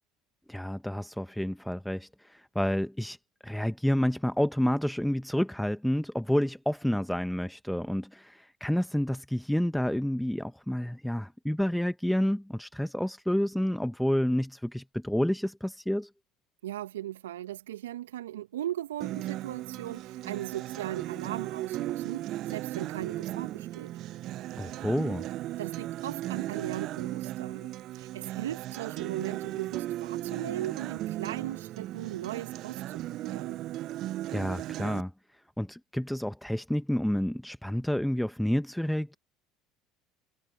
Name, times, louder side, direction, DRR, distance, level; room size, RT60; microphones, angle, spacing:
voice 1, 0.5-3.2 3.4-16.1 24.6-25.3 34.3-35.1 35.6-39.2, equal, 5° left, 1.1 m, -29 dB
voice 2, 16.6-24.0 25.6-33.6, right 13 dB, 75° right, 1.8 m, -38 dB
Acoustic guitar, 19.0-35.0, right 14 dB, 55° right, 0.7 m, -36 dB
figure-of-eight pair, 65°, 0 cm